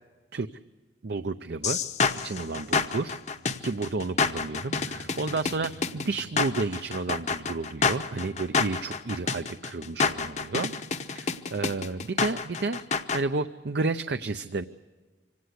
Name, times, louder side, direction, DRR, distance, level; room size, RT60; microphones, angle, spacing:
voice 1, 1.0-1.8 2.2-3.2 3.6-10.7 11.0-12.8 13.1-14.6, right 3 dB, 65° right, 10 dB, 0.6 m, -31 dB
sound 1, 1.6-13.2, left 5 dB, 40° left, 0.8 m, -28 dB
sound 2, 2.3-11.9, equal, 85° right, 6.9 m, -55 dB
25.0 x 17.5 x 8.2 m, 1.3 s
head